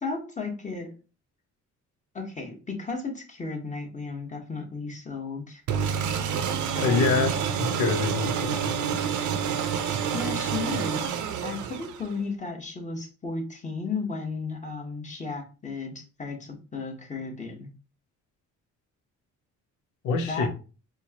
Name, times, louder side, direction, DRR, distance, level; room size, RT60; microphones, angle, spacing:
voice 1, 0.0-0.9 2.1-5.6 6.7-7.2 10.1-17.7 20.1-20.5, left 4 dB, 25° left, 2 dB, 1.1 m, -34 dB
sound 1, 5.7-12.2, right 7 dB, 75° right, 0.6 m, -28 dB
voice 2, 6.8-7.3 7.6-8.8 20.0-20.5, left 4 dB, 85° left, 7 dB, 0.7 m, -26 dB
4.4 x 2.2 x 2.8 m, 0.34 s
cardioid pair, 90°, 30 cm